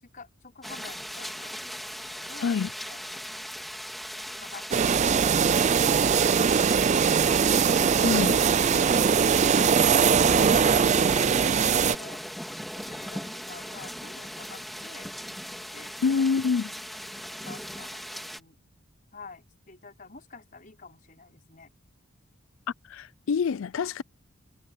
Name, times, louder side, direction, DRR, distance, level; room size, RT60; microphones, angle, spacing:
voice 1, 0.0-1.6 2.0-2.6 2.9-3.3 4.2-7.3 7.9-8.1 8.7-9.9 10.2-12.2 12.7-15.1 15.7-16.2 16.6-16.9 17.4-18.6 19.1-21.7, left 4 dB, 40° left, 5.4 m, -48 dB
sound 1, 0.6-18.4, equal, ahead, 3.1 m, -39 dB
sound 2, 4.7-12.0, right 6 dB, 30° right, 0.4 m, -21 dB
voice 2, 8.0-8.4 16.0-16.7 22.9-24.0, left 5 dB, 65° left, 0.4 m, -26 dB
head